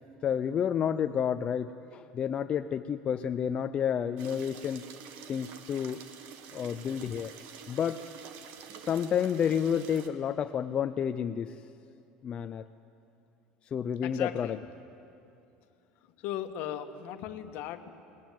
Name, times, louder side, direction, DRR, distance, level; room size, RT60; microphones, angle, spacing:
voice 1, 0.2-4.8 5.3-6.0 6.5-7.3 7.7-8.0 8.8-11.5 12.2-12.6 13.7-14.6, left 8 dB, 35° left, 8 dB, 0.5 m, -30 dB
sound 1, 4.2-10.1, right 7 dB, 65° right, 1.6 m, -48 dB
voice 2, 14.0-14.7 16.2-17.9, left 11 dB, 65° left, 8 dB, 1.3 m, -37 dB
20.5 x 19.0 x 9.3 m, 2.7 s
cardioid pair, 135°, 3 cm